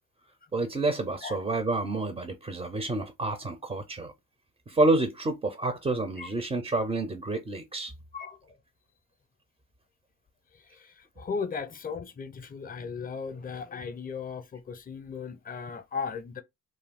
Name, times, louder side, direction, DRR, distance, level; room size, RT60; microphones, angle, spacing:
voice 1, 0.5-4.1 4.7-7.9, right 2 dB, 15° right, 0.5 m, -28 dB
voice 2, 8.1-8.6 10.7-16.4, left 5 dB, 25° left, 0.6 m, -37 dB
2.5 x 2.2 x 3.5 m
supercardioid pair, 70°, 34 cm